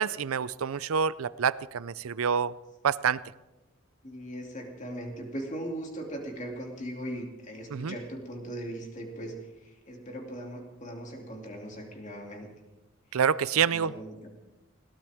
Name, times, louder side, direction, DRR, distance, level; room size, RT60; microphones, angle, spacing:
voice 1, 0.0-2.5 2.8-3.2 7.7-8.0 13.1-13.9, right 7 dB, 85° right, 18 dB, 0.5 m, -27 dB
voice 2, 4.0-12.5 13.1-13.2 13.7-14.4, right 1 dB, 35° left, 1 dB, 2.7 m, -39 dB
20.5 x 17.5 x 3.6 m, 1.0 s
head